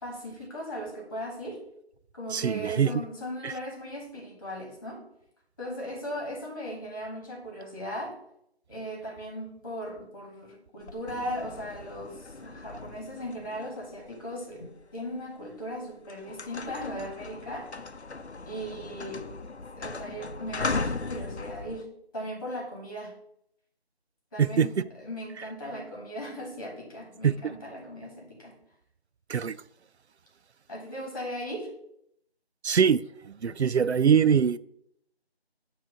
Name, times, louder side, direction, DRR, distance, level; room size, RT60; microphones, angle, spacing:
voice 1, 0.0-1.6 2.1-5.0 5.6-8.2 8.7-17.9 18.5-19.2 19.7-23.1 24.3-28.5 30.7-31.7, equal, 20° left, 1.8 m, -38 dB
voice 2, 2.3-3.0 3.4-3.5 24.4-24.7 27.2-27.5 29.3-29.6 32.6-34.6, right 7 dB, 85° right, 0.5 m, -23 dB
sound 1, 10.8-15.0 15.6-15.8 16.1-21.9, left 3 dB, 85° left, 0.7 m, -37 dB
9.2 x 3.1 x 6.2 m
figure-of-eight pair, 165°, 32 cm